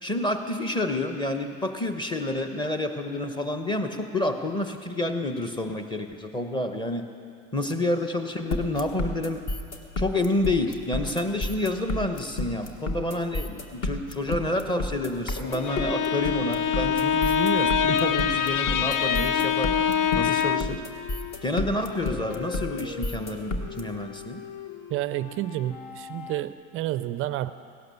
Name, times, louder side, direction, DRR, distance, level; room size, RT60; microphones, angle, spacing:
voice 1, 0.0-7.1 7.5-9.4 10.0-20.8 21.4-24.4, left 2 dB, 10° left, 6 dB, 1.0 m, -29 dB
sound 1, 8.5-23.8, left 2 dB, 40° left, 1.6 m, -31 dB
Bowed string instrument, 15.5-20.8, left 7 dB, 85° left, 0.7 m, -24 dB
sound 2, 18.7-26.5, left 8 dB, 65° left, 1.2 m, -42 dB
voice 2, 24.9-27.5, right 14 dB, 35° right, 14 dB, 0.4 m, -30 dB
17.0 x 11.5 x 6.9 m, 2.4 s
supercardioid pair, 120°, 41 cm